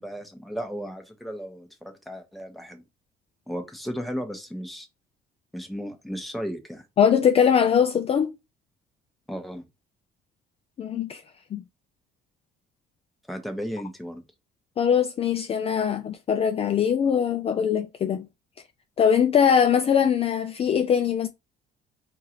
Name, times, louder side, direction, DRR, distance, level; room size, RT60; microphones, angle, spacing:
voice 1, 0.0-2.8 3.5-4.9 5.5-6.8 9.3-9.6 13.3-14.2, equal, ahead, 1.0 m, -35 dB
voice 2, 7.0-8.3 10.8-11.2 11.5-11.6 14.8-18.3 19.0-21.3, left 7 dB, 35° left, 0.4 m, -21 dB
4.6 x 2.5 x 2.9 m
cardioid pair, 110°, 17 cm